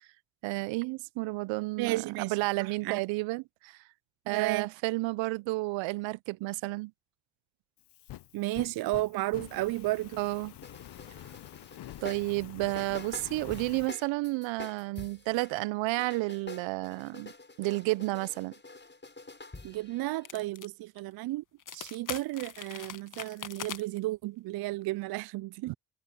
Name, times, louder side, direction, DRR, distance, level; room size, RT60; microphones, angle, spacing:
voice 1, 0.4-3.8 4.3-6.9 10.2-10.5 12.0-17.3 17.6-18.5 25.7-25.8, right 22 dB, 75° right, 1.1 m, -31 dB
voice 2, 1.8-3.0 4.3-4.7 8.3-10.2 19.6-25.7, right 18 dB, 55° right, 0.5 m, -33 dB
Fire, 7.8-13.9, left 14 dB, 60° left, 1.1 m, -47 dB
sound 1, 10.6-15.6 15.9-20.5, left 3 dB, 25° left, 6.2 m, -47 dB
sound 2, 20.2-20.7 21.0-21.1 21.6-24.0, left 8 dB, 40° left, 1.5 m, -41 dB
hypercardioid pair, 45°, 46 cm